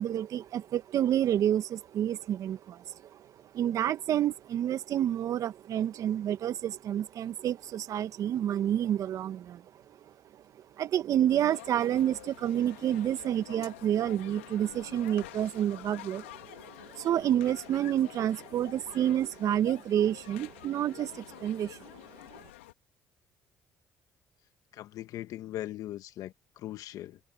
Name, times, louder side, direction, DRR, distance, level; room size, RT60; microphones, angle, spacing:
voice 1, 0.0-9.6 10.0-22.4, right 11 dB, 60° right, 1.8 m, -29 dB
sound 1, 11.3-22.7, left 17 dB, 90° left, 3.4 m, -49 dB
voice 2, 24.7-27.2, left 14 dB, 70° left, 2.2 m, -40 dB
hypercardioid pair, 55°, 6 cm